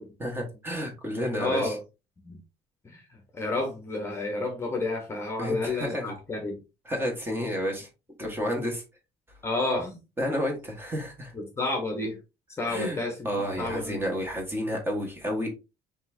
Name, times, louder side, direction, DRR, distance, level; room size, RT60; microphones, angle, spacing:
voice 1, 0.2-1.7 5.4-6.1 6.8-7.9 8.2-8.8 10.2-11.3 12.7-13.0 13.2-15.5, equal, 15° right, 1.4 m, -30 dB
voice 2, 1.4-1.8 2.2-2.4 2.8-6.6 9.4-10.0 10.3-10.4 11.3-12.2 12.6-13.1 13.6-14.2, left 2 dB, 15° left, 1.1 m, -30 dB
5.5 x 3.5 x 2.7 m
cardioid pair, 170°, 15 cm